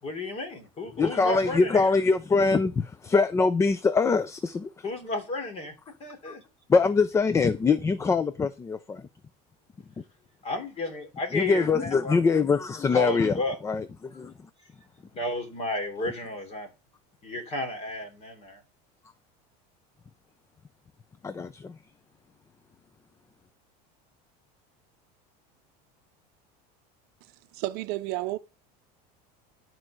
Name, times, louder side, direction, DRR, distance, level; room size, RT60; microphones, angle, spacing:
voice 1, 0.0-1.9 4.8-5.7 6.0-6.4 10.4-12.1 12.9-13.6 15.1-16.7 17.2-18.6, left 2 dB, 30° left, 3.2 m, -32 dB
voice 2, 1.0-4.7 6.3-6.4 6.7-9.1 11.3-14.3 21.2-21.8, left 4 dB, 15° left, 0.5 m, -24 dB
voice 3, 27.5-28.4, right 17 dB, 55° right, 0.7 m, -31 dB
12.0 x 4.6 x 6.3 m
supercardioid pair, 145°, 20 cm